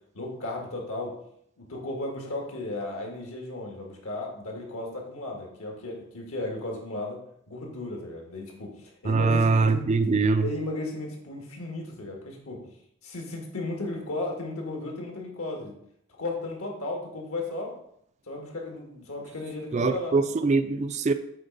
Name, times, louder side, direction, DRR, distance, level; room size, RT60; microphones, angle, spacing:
voice 1, 0.1-1.2 1.6-7.2 7.5-9.8 10.4-12.6 13.0-15.7 16.2-17.7 18.3-20.1, left 2 dB, 80° left, 1.8 m, -35 dB
voice 2, 9.0-10.5 19.7-21.1, right 4 dB, 30° right, 0.3 m, -23 dB
7.7 x 3.3 x 5.3 m
head